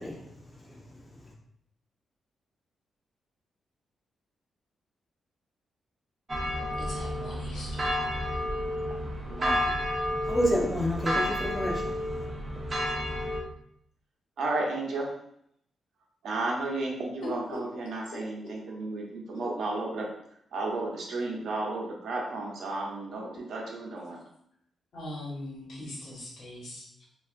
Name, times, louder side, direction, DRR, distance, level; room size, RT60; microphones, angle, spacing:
voice 1, 0.0-1.3 10.2-12.2, equal, 20° left, -2 dB, 0.6 m, -31 dB
sound 1, 6.3-13.4, equal, 25° right, 0.4 m, -31 dB
voice 2, 6.8-8.0 17.2-17.3 24.9-27.0, left 1 dB, 70° left, -4 dB, 1.1 m, -41 dB
voice 3, 9.3-9.7 14.4-15.1 16.2-20.1 20.5-24.2, right 2 dB, 70° right, -2 dB, 0.7 m, -33 dB
3.2 x 2.3 x 2.5 m, 0.72 s
wide cardioid pair, 145°, 0 cm